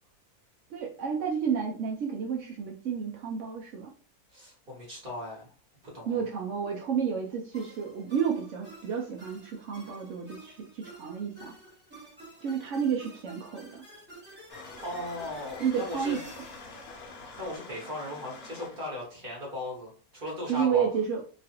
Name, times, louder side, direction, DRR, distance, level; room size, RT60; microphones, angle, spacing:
voice 1, 0.7-3.9 6.1-11.5 12.4-13.8 15.6-16.2 20.5-21.2, right 7 dB, 75° right, 0 dB, 0.7 m, -31 dB
voice 2, 4.3-5.5 5.9-6.2 14.8-16.2 17.4-20.9, left 1 dB, 40° right, -3 dB, 1.0 m, -37 dB
sound 1, 7.5-17.9, right 1 dB, 10° right, 0.7 m, -50 dB
sound 2, 14.5-18.8, left 3 dB, 70° left, 1.1 m, -46 dB
3.0 x 2.4 x 2.8 m, 0.41 s
omnidirectional pair, 1.8 m